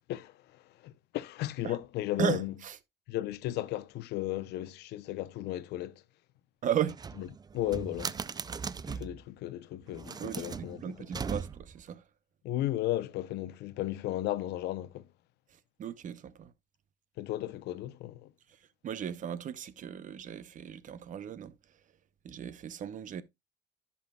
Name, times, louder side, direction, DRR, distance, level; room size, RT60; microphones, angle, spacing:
voice 1, 0.1-2.5 3.1-6.0 7.2-7.3 7.5-8.1 8.9-10.8 12.4-15.1 17.2-18.3, left 15 dB, 80° left, 0.8 m, -35 dB
voice 2, 2.2-2.8 6.6-7.0 10.2-12.0 15.5-16.5 18.8-21.5 22.2-23.2, right 9 dB, 50° right, 0.8 m, -36 dB
sound 1, 6.8-9.2 9.9-11.8, right 6 dB, 25° right, 0.4 m, -39 dB
15.0 x 5.6 x 2.3 m
cardioid pair, 110°, 17 cm